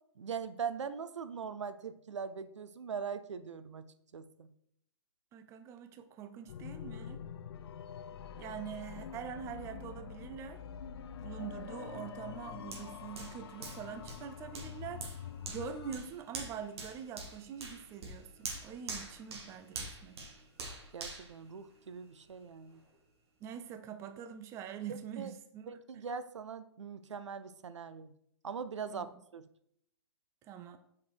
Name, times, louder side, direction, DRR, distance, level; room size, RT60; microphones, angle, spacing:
voice 1, 0.2-3.9 4.1-4.5 20.9-22.8 24.9-25.3 25.7-28.1 28.4-29.1 29.3-29.5, right 6 dB, 90° right, 13 dB, 0.5 m, -41 dB
voice 2, 5.3-7.2 8.4-10.6 11.2-20.1 23.4-26.0 28.9-29.2 30.4-30.8, right 8 dB, 20° right, 9 dB, 0.5 m, -44 dB
sound 1, 6.5-16.0, left 8 dB, 60° left, 0.5 m, -46 dB
Hands, 12.7-22.2 22.7-22.8, right 3 dB, 60° right, 1.9 m, -46 dB
5.3 x 5.1 x 4.6 m, 0.71 s
hypercardioid pair, 140°, 15 cm